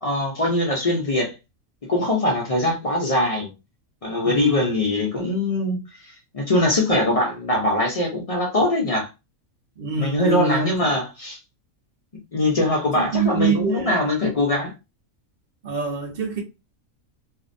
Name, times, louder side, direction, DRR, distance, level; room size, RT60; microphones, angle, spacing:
voice 1, 0.0-1.3 1.9-3.5 4.0-5.8 6.3-9.1 10.0-11.4 12.3-14.7, left 1 dB, 55° left, 0.3 m, -22 dB
voice 2, 4.2-4.6 9.8-11.0 12.9-14.0 15.6-16.4, right 5 dB, 45° right, 0.7 m, -25 dB
2.6 x 2.0 x 2.5 m
omnidirectional pair, 1.5 m